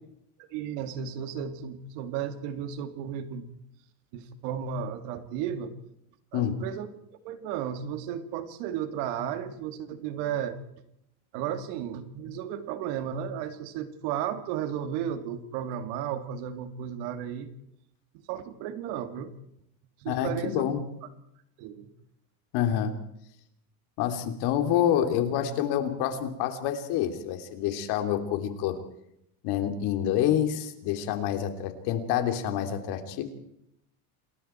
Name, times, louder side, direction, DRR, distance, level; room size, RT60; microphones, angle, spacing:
voice 1, 0.5-3.6 4.1-5.7 6.3-6.9 7.2-10.6 11.3-17.5 18.3-19.3 20.0-20.6 21.6-21.9, right 9 dB, 65° right, 9 dB, 2.7 m, -34 dB
voice 2, 20.1-20.8 22.5-23.0 24.0-28.8 29.4-33.2, left 10 dB, 55° left, 7 dB, 3.3 m, -27 dB
28.0 x 21.0 x 4.6 m, 0.78 s
supercardioid pair, 145°, 45 cm